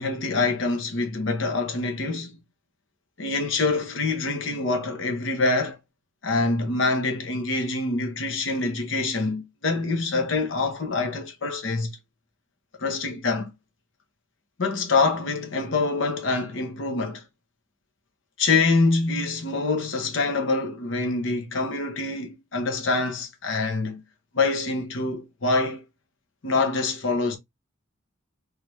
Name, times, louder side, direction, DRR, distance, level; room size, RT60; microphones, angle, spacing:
voice 1, 0.0-2.4 3.2-5.8 6.2-12.0 12.8-13.5 14.6-17.2 18.4-24.0 24.3-25.8 26.4-27.4, left 3 dB, 70° left, 0.9 m, -25 dB
3.3 x 3.1 x 3.3 m
head